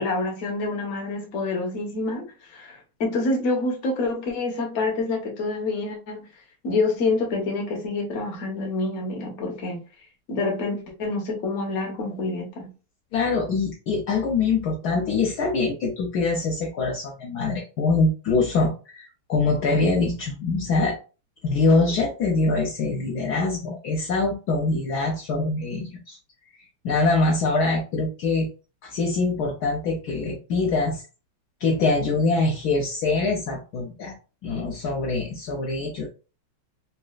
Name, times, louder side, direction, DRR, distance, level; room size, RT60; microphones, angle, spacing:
voice 1, 0.0-2.2 2.5-6.2 6.6-9.8 10.3-12.7, left 3 dB, 50° left, 0.9 m, -27 dB
voice 2, 13.1-21.0 21.4-26.2 26.6-28.5 28.8-31.0 31.6-34.1 34.4-36.1, left 3 dB, 75° left, 0.9 m, -24 dB
4.1 x 2.3 x 2.3 m
omnidirectional pair, 2.3 m